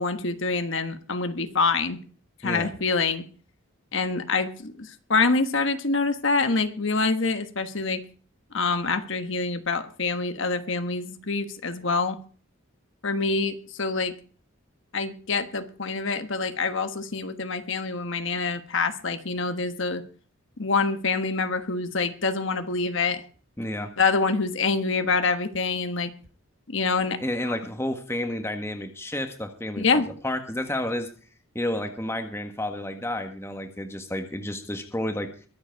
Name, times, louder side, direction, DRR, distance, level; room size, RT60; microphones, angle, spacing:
voice 1, 0.0-2.0 2.4-3.2 3.9-8.0 8.5-12.2 13.0-14.1 14.9-20.0 20.6-23.2 24.0-26.1 26.7-27.2 29.8-30.1, left 4 dB, 60° left, 8 dB, 1.3 m, -26 dB
voice 2, 23.6-23.9 27.2-31.1 31.5-35.3, left 1 dB, 10° left, 6 dB, 1.5 m, -31 dB
23.0 x 7.9 x 4.6 m, 0.40 s
head